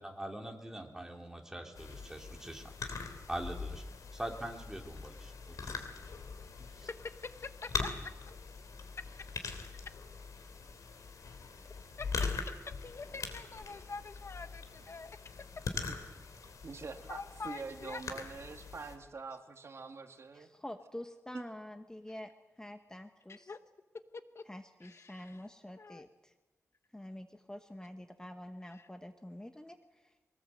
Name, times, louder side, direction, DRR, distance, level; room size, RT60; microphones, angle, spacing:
voice 1, 0.0-2.6 3.3-3.8 4.1-5.8 6.6-6.9, right 1 dB, 10° right, 2 dB, 3.4 m, -43 dB
sound 1, 1.8-19.0, left 4 dB, 85° left, 3.0 m, -42 dB
voice 2, 7.2-8.1 11.6-12.1 12.8-15.1 17.1-18.0 23.3-23.6 24.1-24.4 24.8-25.4 25.8-26.1 28.7-28.9, left 4 dB, 50° left, 10 dB, 1.1 m, -46 dB
voice 3, 16.6-20.5 21.3-21.4, right 4 dB, 55° right, 5 dB, 2.1 m, -45 dB
voice 4, 20.3-22.3 22.6-23.5 24.4-26.3 26.9-30.2, left 1 dB, 10° left, 7 dB, 1.2 m, -47 dB
23.5 x 19.0 x 7.9 m, 1.1 s
wide cardioid pair, 90°, 6 cm